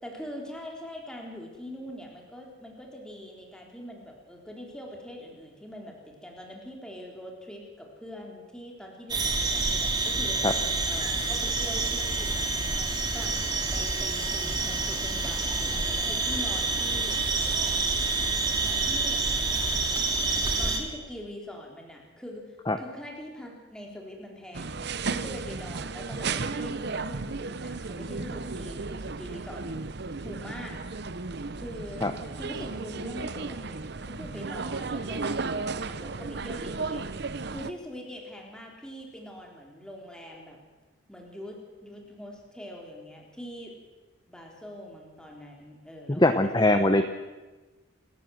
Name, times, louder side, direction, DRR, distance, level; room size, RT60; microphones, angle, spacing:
voice 1, 0.0-10.4 10.8-12.5 12.7-13.4 13.7-17.2 18.6-29.7 30.2-30.8 31.6-32.0 32.4-37.0 37.5-40.6 41.1-43.8 44.3-46.9, equal, 5° left, 0 dB, 3.8 m, -43 dB
sound 1, 9.1-20.8, right 3 dB, 20° right, 2.4 m, -28 dB
sound 2, 24.5-37.7, right 4 dB, 55° right, 0.8 m, -34 dB
voice 2, 46.1-47.1, left 1 dB, 20° left, 8 dB, 0.9 m, -21 dB
28.0 x 14.0 x 7.9 m, 1.2 s
head